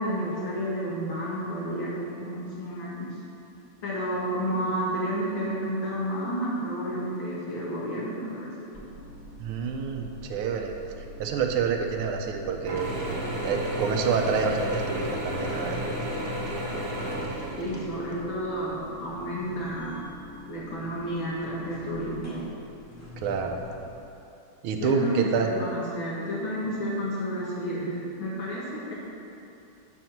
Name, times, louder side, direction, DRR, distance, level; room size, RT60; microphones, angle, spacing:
voice 1, 0.0-3.1 3.8-8.5 17.6-20.0 20.5-22.5 24.8-29.0, equal, 65° left, -6 dB, 2.5 m, -31 dB
sound 1, 8.7-24.1, equal, 15° left, 0.6 m, -44 dB
voice 2, 9.4-10.8 11.2-12.9 13.4-15.8 23.2-23.6 24.6-25.5, right 5 dB, 85° right, 3 dB, 1.6 m, -27 dB
Mechanisms / Drill, 12.7-18.2, equal, 50° right, 1.6 m, -32 dB
10.5 x 4.5 x 5.9 m, 2.8 s
omnidirectional pair, 2.3 m